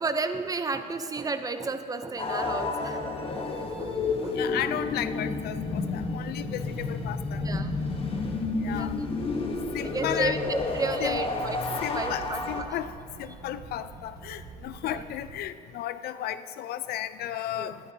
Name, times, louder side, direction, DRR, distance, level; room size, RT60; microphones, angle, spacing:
voice 1, 0.0-3.0 3.3-3.5 3.8-3.9 4.2-4.4 6.2-6.3 7.4-7.8 8.7-9.1 9.8-12.8 14.8-15.0 17.6-17.7, right 3 dB, 20° right, 9 dB, 0.6 m, -32 dB
sound 1, 2.2-12.6, left 3 dB, 35° left, 1.1 m, -31 dB
voice 2, 4.4-7.4 8.6-8.9 9.7-10.4 11.0-11.2 11.8-12.9 13.2-17.8, left 12 dB, 70° left, 13 dB, 0.4 m, -34 dB
sound 2, 7.0-15.4, right 4 dB, 65° right, 1.3 m, -46 dB
13.5 x 11.5 x 2.8 m, 2.7 s
cardioid pair, 110°, 17 cm